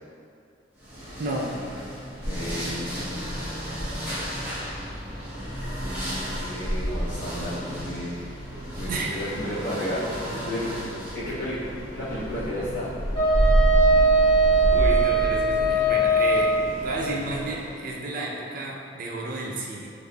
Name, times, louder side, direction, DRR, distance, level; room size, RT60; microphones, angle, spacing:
sound 1, 0.8-17.9, equal, 10° right, 1.3 m, -30 dB
voice 1, 1.2-1.5 8.9-9.4 14.7-16.5 16.8-19.9, right 2 dB, 50° right, -1 dB, 0.4 m, -31 dB
voice 2, 2.2-3.9 4.4-4.5 6.4-8.4 8.8-10.7 11.1-11.6 11.9-12.9, left 1 dB, 65° left, -13 dB, 0.8 m, -33 dB
Wind instrument woodwind instrument, 13.1-16.7, right 2 dB, 20° left, 0.9 m, -20 dB
4.0 x 3.4 x 2.2 m, 2.4 s
head